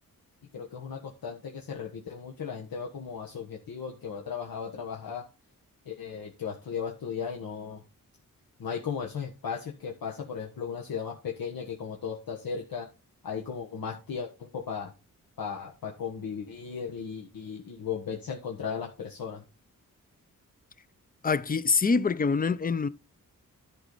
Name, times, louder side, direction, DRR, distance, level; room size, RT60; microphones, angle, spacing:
voice 1, 0.5-5.3 5.8-7.8 8.6-12.9 13.2-14.9 15.4-19.4, left 6 dB, 85° left, 1.4 m, -36 dB
voice 2, 21.2-22.9, left 5 dB, 25° left, 0.5 m, -25 dB
11.5 x 5.1 x 4.0 m
wide cardioid pair, 90°, 34 cm